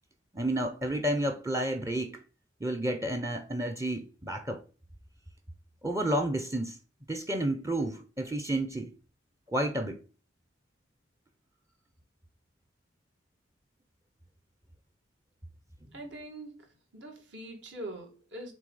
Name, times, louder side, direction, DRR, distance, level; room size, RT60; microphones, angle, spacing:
voice 1, 0.3-2.2 2.6-4.6 5.8-6.8 7.1-8.9 9.5-10.0, right 1 dB, 15° right, 0.6 m, -31 dB
voice 2, 15.9-16.5 16.9-18.5, right 1 dB, 70° right, 2.3 m, -42 dB
6.2 x 3.9 x 3.9 m
head